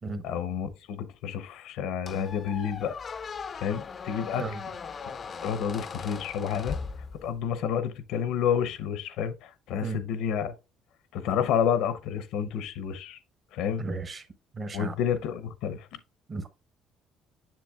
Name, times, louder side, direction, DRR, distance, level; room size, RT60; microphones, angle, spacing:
voice 1, 0.2-3.0 3.5-4.4 5.4-6.8 7.2-10.5 11.1-13.2 13.5-13.8 14.7-15.9, left 8 dB, 80° left, 0.6 m, -29 dB
Squeak, 2.1-7.6, left 5 dB, 30° left, 0.3 m, -39 dB
voice 2, 13.8-14.3 14.5-14.9 16.3-16.5, right 3 dB, 30° right, 0.8 m, -34 dB
7.5 x 6.7 x 2.3 m
cardioid pair, 130°, 0 cm